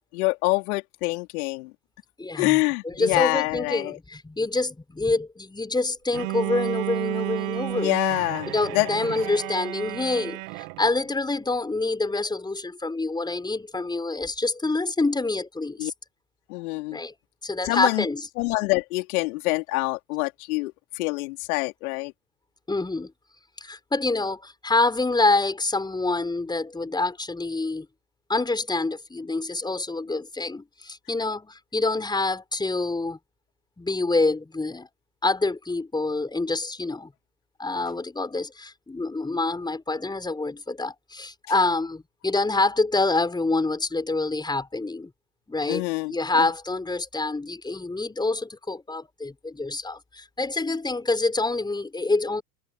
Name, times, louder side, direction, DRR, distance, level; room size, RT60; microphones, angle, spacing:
voice 1, 0.1-1.7 2.4-4.0 7.7-8.9 15.8-15.9 16.5-17.0 17.6-18.1 18.4-22.1 45.7-46.5, left 23 dB, 60° left, 4.0 m, -26 dB
voice 2, 2.2-7.9 8.5-15.9 16.9-17.1 17.4-18.3 22.7-23.1 23.6-27.9 28.3-33.2 33.8-34.9 35.2-37.1 37.6-45.1 45.5-52.4, left 3 dB, 10° left, 4.7 m, -26 dB
Bowed string instrument, 6.1-11.0, right 31 dB, 55° right, 2.2 m, -32 dB
hypercardioid pair, 90°, 48 cm